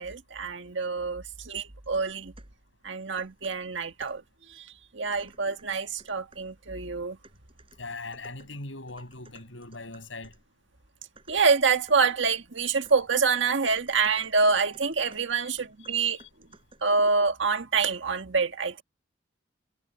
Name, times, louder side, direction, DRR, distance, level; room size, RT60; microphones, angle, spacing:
voice 1, 0.0-2.3 2.8-4.2 4.5-7.2 11.3-16.2 16.8-18.8, right 4 dB, 75° right, 1.7 m, -26 dB
sound 1, 1.8-2.6 3.2-4.3 5.2-6.6 7.2-10.5 11.2-17.0, right 3 dB, 30° right, 5.7 m, -56 dB
voice 2, 7.8-10.3 15.4-15.5 15.8-16.3, left 3 dB, 85° left, 7.8 m, -41 dB
head